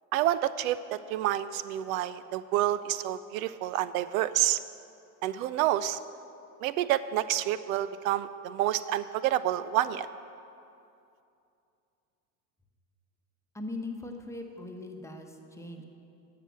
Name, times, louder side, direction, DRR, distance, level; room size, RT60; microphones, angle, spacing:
voice 1, 0.1-4.6 5.2-6.0 6.6-10.1, right 13 dB, 75° right, 15 dB, 0.5 m, -28 dB
voice 2, 13.5-15.8, left 2 dB, 5° left, 3 dB, 1.0 m, -40 dB
11.0 x 5.8 x 7.3 m, 2.6 s
supercardioid pair, 100°, 41 cm